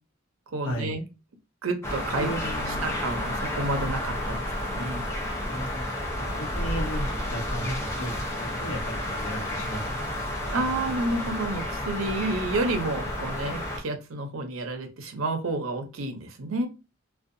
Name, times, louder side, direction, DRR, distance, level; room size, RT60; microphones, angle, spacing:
voice 1, 0.5-1.0 1.6-2.3 2.7-5.0 10.5-16.7, right 2 dB, 85° right, 6 dB, 0.6 m, -30 dB
sound 1, 1.8-13.8, left 1 dB, 15° left, 0.6 m, -31 dB
voice 2, 2.2-2.9 5.5-5.9 6.2-8.1 8.4-9.9 10.6-10.7, right 1 dB, 75° left, 2 dB, 0.8 m, -35 dB
2.6 x 2.2 x 2.5 m, 0.29 s
head